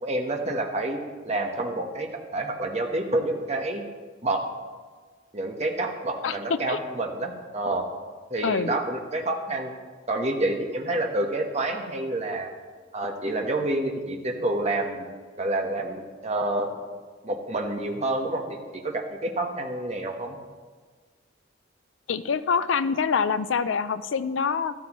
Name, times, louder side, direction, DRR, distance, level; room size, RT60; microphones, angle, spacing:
voice 1, 0.0-1.0 1.2-3.8 4.2-4.5 5.3-7.8 8.3-9.7 10.1-12.5 12.9-15.1 15.4-16.7 17.2-18.4 18.7-20.4, right 2 dB, 35° right, 3 dB, 1.1 m, -28 dB
voice 2, 6.2-6.8 8.4-8.7 22.1-24.7, left 5 dB, 80° left, 13 dB, 0.5 m, -25 dB
13.5 x 13.0 x 3.0 m, 1.5 s
head